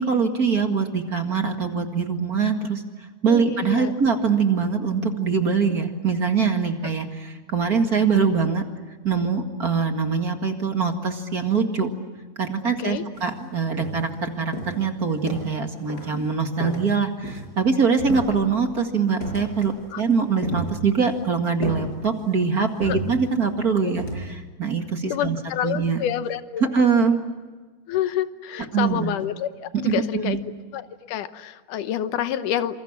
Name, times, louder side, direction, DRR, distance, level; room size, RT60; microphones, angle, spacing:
voice 1, 0.0-2.8 3.2-8.6 9.0-11.9 12.4-25.4 25.6-26.0 26.7-27.2 28.7-29.1 29.9-30.4, right 5 dB, 35° right, 5 dB, 2.1 m, -23 dB
voice 2, 3.3-3.9 12.8-13.0 16.1-16.2 19.9-20.0 22.9-23.0 23.8-24.0 25.1-26.7 27.9-30.4 30.7-32.8, left 10 dB, 85° left, 12 dB, 2.6 m, -28 dB
sound 1, 13.1-13.3 13.8-14.2 14.5-15.6 15.9-16.2 16.6-17.7 18.0-18.7 19.2-19.8 20.1-21.2 21.6-22.4 22.8-23.5 24.0-24.3, right 1 dB, 30° left, 5.9 m, -33 dB
27.5 x 27.5 x 7.4 m, 1.4 s
omnidirectional pair, 3.5 m